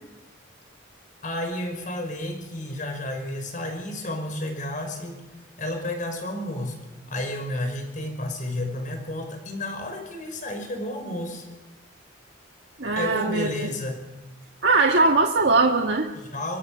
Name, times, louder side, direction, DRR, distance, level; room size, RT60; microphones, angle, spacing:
voice 1, 1.2-5.2 5.6-6.8 7.1-11.5 12.9-14.0 16.1-16.6, left 1 dB, 40° left, 5 dB, 5.6 m, -31 dB
voice 2, 12.8-13.7 14.6-16.1, right 3 dB, 60° right, 2 dB, 1.6 m, -20 dB
24.5 x 24.5 x 6.8 m, 1.1 s
head